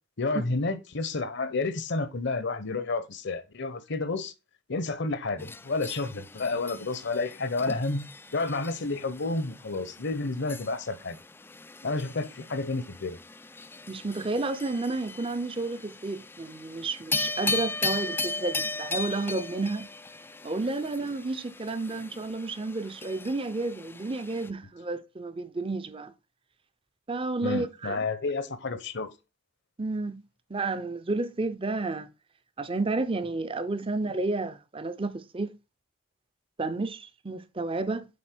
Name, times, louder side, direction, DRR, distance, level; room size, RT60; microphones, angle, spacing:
voice 1, 0.2-4.3 4.7-11.2 11.8-13.2 27.4-29.1, left 3 dB, 60° left, 0.9 m, -30 dB
sound 1, 5.4-24.5, left 3 dB, 10° left, 0.3 m, -37 dB
voice 2, 13.9-19.9 20.4-26.1 27.1-28.0 29.8-30.2 30.5-32.1 32.6-35.5 36.6-38.1, right 3 dB, 25° right, 0.6 m, -31 dB
8.6 x 4.2 x 4.4 m
head